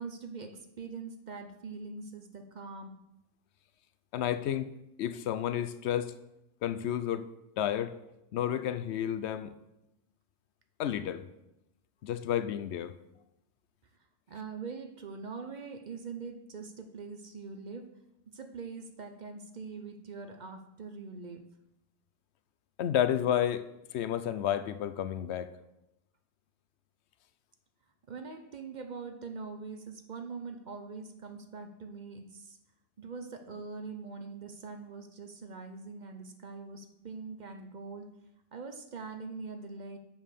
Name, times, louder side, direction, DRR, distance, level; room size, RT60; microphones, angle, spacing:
voice 1, 0.0-3.0 14.3-17.9 18.3-21.4 28.1-32.6 33.0-38.1 38.5-40.0, right 4 dB, 50° right, 7 dB, 0.7 m, -43 dB
voice 2, 4.1-4.7 5.0-6.1 6.6-7.3 7.6-7.9 8.3-9.6 10.8-11.2 12.0-13.0 22.8-25.5, left 10 dB, 80° left, 12 dB, 0.8 m, -31 dB
7.4 x 5.5 x 6.5 m, 0.89 s
omnidirectional pair, 1.1 m